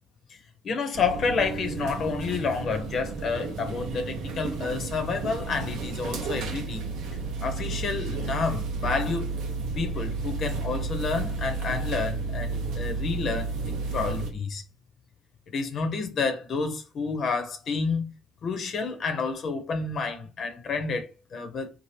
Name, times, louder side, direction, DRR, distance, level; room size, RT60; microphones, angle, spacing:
voice 1, 0.3-6.8 7.4-9.3 9.7-13.6 13.9-14.6 15.5-18.1 18.4-21.7, left 4 dB, 55° left, 0.7 m, -29 dB
sound 1, 0.9-14.3, right 4 dB, 75° right, 0.8 m, -32 dB
2.8 x 2.4 x 3.2 m
supercardioid pair, 65°, 0 cm